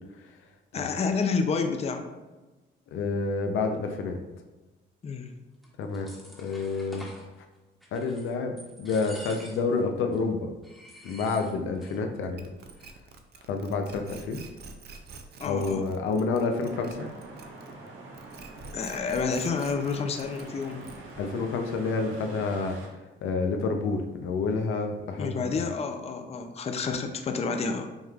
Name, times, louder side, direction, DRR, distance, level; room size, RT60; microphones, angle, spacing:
voice 1, 0.7-2.0 5.0-5.3 15.4-15.8 18.7-20.8 25.2-27.9, left 4 dB, 30° left, 6 dB, 0.5 m, -29 dB
voice 2, 2.9-4.2 5.8-6.1 6.4-7.0 7.9-10.5 11.0-12.5 13.5-14.4 15.4-17.1 21.2-22.8 23.2-25.7, left 4 dB, 85° left, 4 dB, 0.5 m, -29 dB
sound 1, 5.6-7.3 7.8-8.3 8.6-9.8 10.1-10.2 10.6-12.0 12.2-12.3 12.6-13.1, equal, ahead, 1.1 m, -47 dB
sound 2, 12.4-17.9 18.1-21.2, right 4 dB, 55° right, 0.5 m, -47 dB
sound 3, 16.7-22.9, right 2 dB, 85° right, 0.9 m, -44 dB
5.3 x 3.1 x 2.3 m, 1.2 s
cardioid pair, 90°, 20 cm